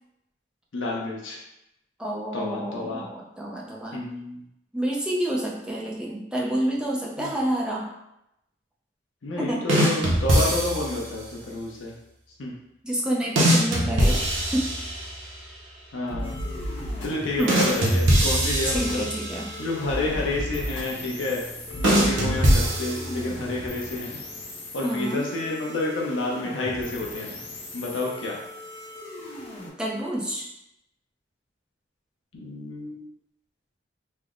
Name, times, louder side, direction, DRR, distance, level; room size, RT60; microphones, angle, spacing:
voice 1, 0.7-1.4 2.3-3.0 3.9-4.4 7.2-7.3 9.2-11.9 12.4-12.5 15.9-16.3 17.0-19.1 19.6-21.4 21.8-24.2 24.7-27.4 27.7-28.4 32.3-33.1, left 2 dB, 85° left, -3 dB, 0.6 m, -29 dB
voice 2, 2.0-4.0 4.7-7.9 9.4-9.7 12.8-14.3 14.5-14.7 17.4-17.6 18.7-19.6 24.8-25.2 29.8-30.5, right 1 dB, 5° right, -3 dB, 0.4 m, -28 dB
sound 1, 9.7-11.1 13.4-15.3 17.5-19.6 21.8-23.5, right 1 dB, 85° right, 0.8 m, -22 dB
sound 2, 16.1-23.6, equal, 70° left, 1.1 m, -35 dB
sound 3, 16.2-29.7, left 2 dB, 30° left, 0.6 m, -40 dB
3.3 x 2.0 x 3.6 m, 0.83 s
head